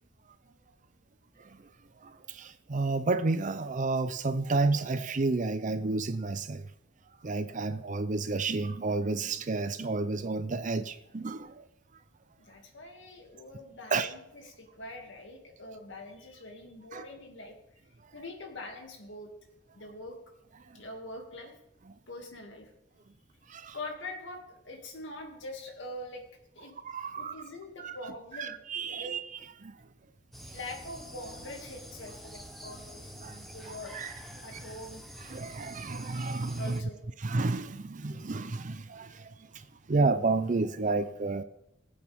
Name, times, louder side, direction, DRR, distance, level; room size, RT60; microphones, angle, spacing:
voice 1, 2.0-6.7 7.2-11.6 13.9-14.1 16.9-17.0 23.5-23.8 26.8-27.3 27.8-28.0 28.4-29.2 29.6-29.8 33.2-33.4 33.9-34.1 35.3-36.8 37.2-41.4, right 3 dB, 45° right, 0.6 m, -31 dB
voice 2, 12.4-17.6 18.1-19.3 19.7-20.2 20.7-21.6 22.1-22.7 23.7-26.2 26.5-26.8 27.1-28.6 28.9-29.1 30.5-35.0 36.6-37.0, left 1 dB, 75° left, 2.5 m, -44 dB
sound 1, 30.3-36.8, equal, ahead, 1.4 m, -47 dB
21.0 x 8.6 x 3.6 m
head